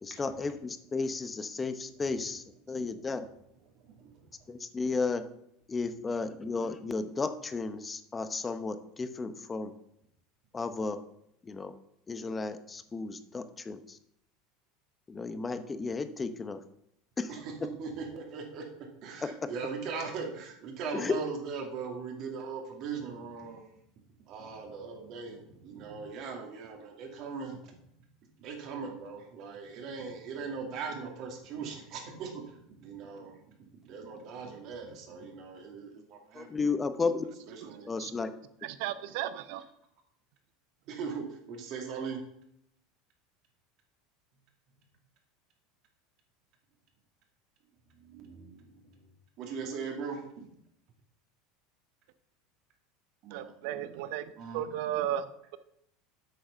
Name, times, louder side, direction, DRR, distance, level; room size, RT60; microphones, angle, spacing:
voice 1, 0.0-2.4 2.7-3.2 4.7-5.2 5.7-9.7 10.5-11.0 11.5-11.7 12.1-13.8 15.1-16.6 17.2-17.3 20.9-21.1 36.4-37.2 37.9-38.3, left 4 dB, 20° left, 11 dB, 0.7 m, -33 dB
voice 2, 1.9-2.8 3.6-4.2 17.3-18.6 19.0-23.7 24.3-27.8 28.4-33.4 33.8-36.7 37.5-37.9 40.9-42.2 48.0-49.1 49.4-50.5 53.2-53.5 54.4-54.6, right 5 dB, 50° right, 2 dB, 2.4 m, -40 dB
voice 3, 37.6-38.1 38.6-39.6 53.3-55.6, right 11 dB, 70° right, 13 dB, 0.7 m, -35 dB
8.1 x 6.4 x 5.7 m, 0.76 s
supercardioid pair, 125°, 0 cm